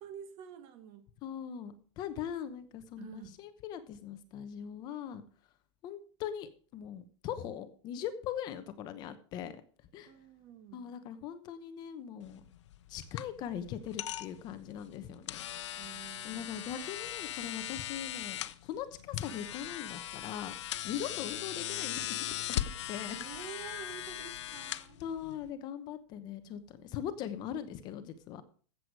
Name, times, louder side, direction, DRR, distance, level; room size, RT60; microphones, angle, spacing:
voice 1, 0.0-1.1 3.0-3.3 10.1-10.9 15.8-16.7 21.0-21.1 23.1-25.0, right 9 dB, 35° right, 1.5 m, -49 dB
voice 2, 1.2-5.2 5.8-9.6 9.9-10.1 10.7-12.4 12.9-15.4 16.2-20.5 20.8-22.6 22.9-23.2 25.0-28.4, left 9 dB, 30° left, 1.0 m, -40 dB
sound 1, 12.2-25.5, left 12 dB, 75° left, 0.8 m, -39 dB
14.5 x 7.9 x 4.7 m
supercardioid pair, 160°, 15 cm